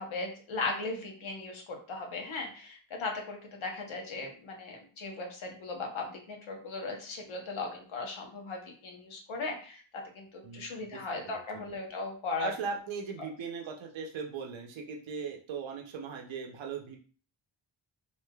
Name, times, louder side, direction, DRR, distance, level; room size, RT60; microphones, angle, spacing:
voice 1, 0.0-9.8 10.1-12.5 13.2-13.3, left 3 dB, 80° left, 2 dB, 0.9 m, -37 dB
voice 2, 10.4-11.6 12.4-17.0, right 5 dB, 75° right, 1 dB, 0.6 m, -39 dB
3.1 x 2.6 x 2.2 m, 0.41 s
wide cardioid pair, 110°, 47 cm